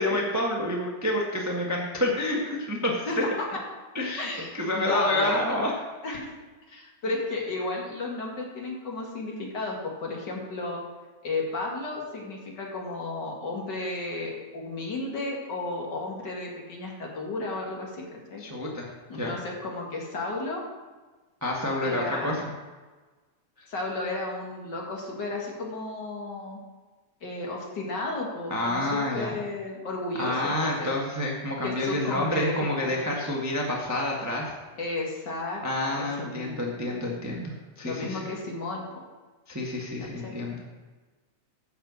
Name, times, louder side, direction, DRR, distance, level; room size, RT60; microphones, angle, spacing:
voice 1, 0.0-3.2 3.9-4.3 4.5-5.7 18.4-18.9 19.2-19.3 21.4-22.4 23.6-23.7 28.5-29.3 30.2-34.5 35.6-38.3 39.5-40.6, left 1 dB, 15° right, -2 dB, 0.5 m, -28 dB
voice 2, 3.1-3.6 4.2-5.6 6.0-6.3 6.7-10.8 11.2-18.4 19.1-20.6 21.8-22.5 23.7-26.6 27.2-31.0 31.6-33.1 34.8-36.6 37.8-39.0 40.0-40.4, left 2 dB, 40° left, -1 dB, 2.2 m, -33 dB
10.0 x 5.6 x 7.6 m, 1.3 s
omnidirectional pair, 3.4 m